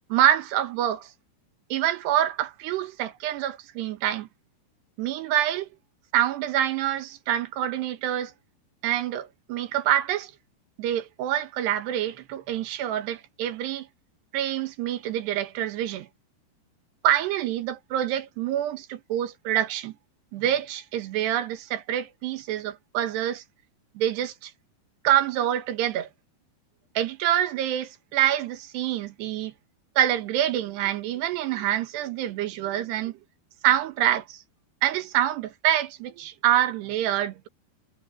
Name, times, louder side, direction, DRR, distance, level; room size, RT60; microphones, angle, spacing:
voice 1, 0.1-1.1 1.7-4.3 5.0-5.7 6.1-8.3 8.8-10.3 10.8-13.9 14.3-16.1 17.0-19.9 20.3-23.4 24.0-24.5 25.1-26.1 27.0-29.5 30.0-33.1 33.6-34.4 34.8-37.5, right 11 dB, 80° right, 3.4 m, -26 dB
omnidirectional pair, 4.8 m